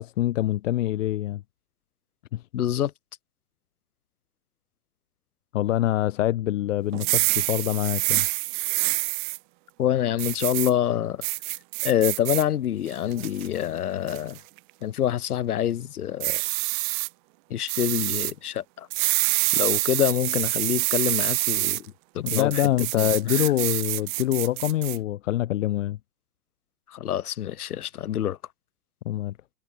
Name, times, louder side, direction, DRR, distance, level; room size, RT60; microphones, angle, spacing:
voice 1, 0.0-1.4 2.3-2.4 5.5-8.3 22.2-26.0 29.0-29.3, left 14 dB, 50° left, 3.1 m, -25 dB
voice 2, 2.5-2.9 9.8-11.2 11.8-14.4 14.8-16.4 17.5-18.9 19.5-23.4 26.9-28.4, left 11 dB, 70° left, 6.7 m, -26 dB
sound 1, 6.9-9.4 10.2-10.7 11.2-12.4 12.9-13.5 14.1-14.4 16.2-17.1 17.7-18.3 18.9-21.8 22.3-25.0, right 27 dB, 30° right, 2.2 m, -26 dB
hypercardioid pair, 165°, 47 cm